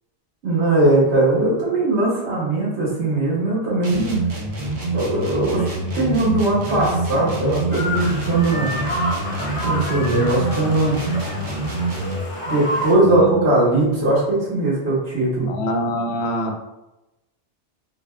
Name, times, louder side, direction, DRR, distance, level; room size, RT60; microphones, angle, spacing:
voice 1, 0.4-4.2 4.9-8.7 9.6-11.0 12.5-15.6, right 2 dB, 70° right, -6 dB, 1.6 m, -20 dB
sound 1, 3.8-12.3, right 2 dB, 50° right, 0.8 m, -26 dB
sound 2, 7.7-12.9, equal, 40° left, 0.5 m, -29 dB
voice 2, 13.0-13.5 15.5-16.7, left 1 dB, 70° left, 3 dB, 0.8 m, -25 dB
4.0 x 3.4 x 2.3 m, 0.97 s
omnidirectional pair, 1.2 m